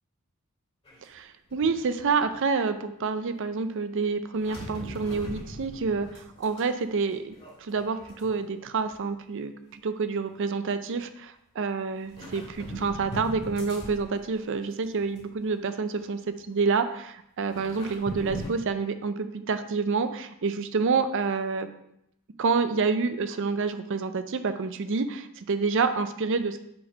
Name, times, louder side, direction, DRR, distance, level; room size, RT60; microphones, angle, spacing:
sound 1, 0.8-1.1 1.5-2.4 4.4-6.6 6.9-8.6 8.9-9.2 10.3-10.4 12.0-14.4 14.8-15.5 16.0-16.1 17.4-18.5, equal, 25° left, 1.8 m, -41 dB
voice 1, 1.0-21.7 22.4-26.6, right 4 dB, 60° right, 10 dB, 0.5 m, -28 dB
5.7 x 4.2 x 5.1 m, 0.77 s
head